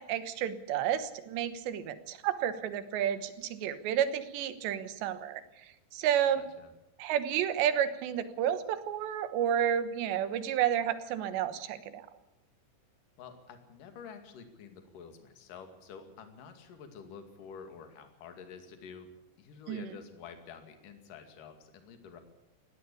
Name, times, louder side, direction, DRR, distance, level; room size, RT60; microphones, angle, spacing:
voice 1, 0.0-6.4 7.0-12.1 19.7-19.9, right 10 dB, 90° right, 12 dB, 3.5 m, -31 dB
voice 2, 6.4-6.7 13.2-19.1 19.4-22.2, left 6 dB, 55° left, 7 dB, 3.6 m, -49 dB
19.0 x 16.5 x 8.4 m, 0.93 s
omnidirectional pair, 5.0 m